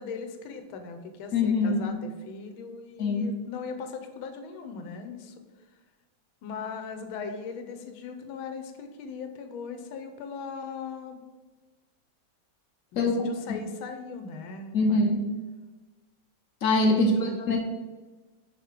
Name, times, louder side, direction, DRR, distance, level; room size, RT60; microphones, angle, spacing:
voice 1, 0.0-5.3 6.4-11.2 12.9-15.0 16.9-17.4, left 5 dB, 90° left, 7 dB, 1.6 m, -39 dB
voice 2, 1.3-2.0 3.0-3.3 12.9-13.6 14.7-15.3 16.6-17.6, left 2 dB, 60° left, 3 dB, 0.9 m, -24 dB
5.1 x 5.1 x 5.0 m, 1.3 s
omnidirectional pair, 2.2 m